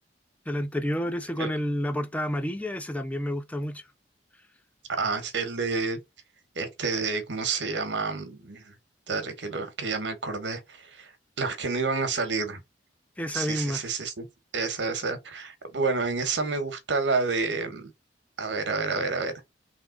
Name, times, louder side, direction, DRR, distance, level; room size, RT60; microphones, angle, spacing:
voice 1, 0.5-3.8 13.2-13.8, equal, 10° left, 0.4 m, -29 dB
voice 2, 4.9-6.0 6.5-8.7 9.1-11.1 11.4-12.6 13.3-14.3 14.5-17.9 18.4-19.3, right 4 dB, 70° right, 1.0 m, -29 dB
3.5 x 2.8 x 3.7 m
head